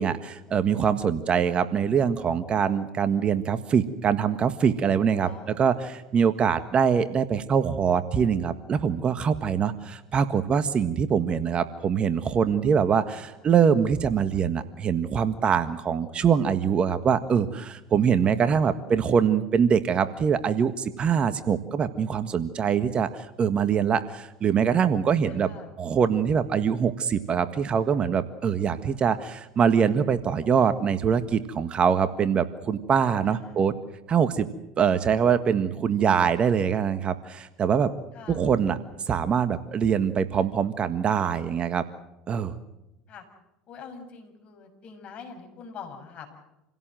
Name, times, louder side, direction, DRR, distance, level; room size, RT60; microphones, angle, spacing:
voice 1, 0.0-25.5 25.8-33.7 34.1-34.5 34.8-37.9 38.3-38.8 39.1-41.8 42.3-42.6, right 7 dB, 35° right, 11 dB, 1.6 m, -23 dB
voice 2, 5.2-5.7 13.1-13.4 18.2-18.7 25.3-25.7 33.2-33.7 38.1-38.5 43.1-43.2 43.7-46.4, left 6 dB, 45° left, 4 dB, 6.5 m, -45 dB
28.0 x 17.0 x 7.8 m, 0.95 s
hypercardioid pair, 85°, 3 cm